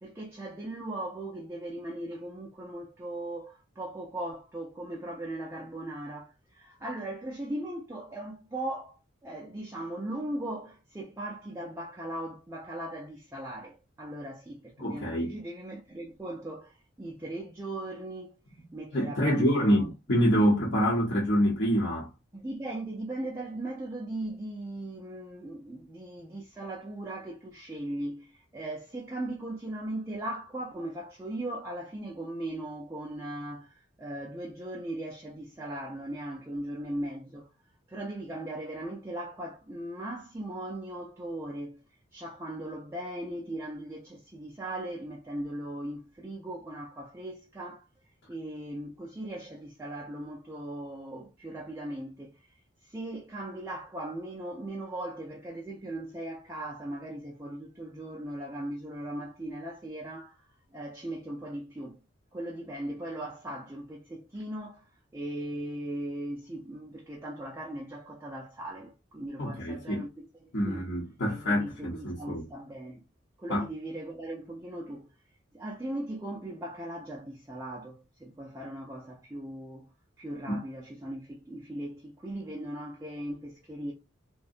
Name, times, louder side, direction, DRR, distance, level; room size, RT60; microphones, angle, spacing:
voice 1, 0.0-9.0 9.2-18.3 18.7-19.9 22.3-37.5 37.9-41.8 42.1-47.9 48.3-52.4 52.8-60.4 60.7-62.0 62.3-64.9 65.1-70.8 71.3-73.0 73.4-75.1 75.5-79.9 80.2-83.9, right 1 dB, 15° right, 0.3 m, -38 dB
voice 2, 14.8-15.3 18.9-22.1 69.4-70.0 70.5-72.4 73.5-73.6 80.5-80.6, equal, 55° left, 0.8 m, -26 dB
2.6 x 2.1 x 2.4 m
head